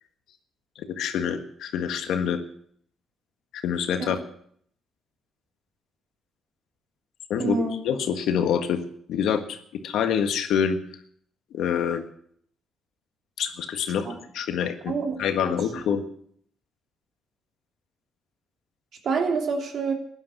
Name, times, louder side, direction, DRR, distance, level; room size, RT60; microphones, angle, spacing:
voice 1, 0.8-2.4 3.5-4.2 7.3-8.8 9.1-9.6 9.8-10.8 11.5-12.0 13.4-14.1 14.3-14.9 15.2-16.0, left 8 dB, 80° left, 7 dB, 1.6 m, -26 dB
voice 2, 7.4-7.8 14.0-14.2 14.9-15.2 15.4-15.5 19.0-19.9, right 4 dB, 60° right, 3 dB, 3.1 m, -26 dB
16.0 x 11.0 x 5.7 m, 0.63 s
cardioid pair, 90°, 0 cm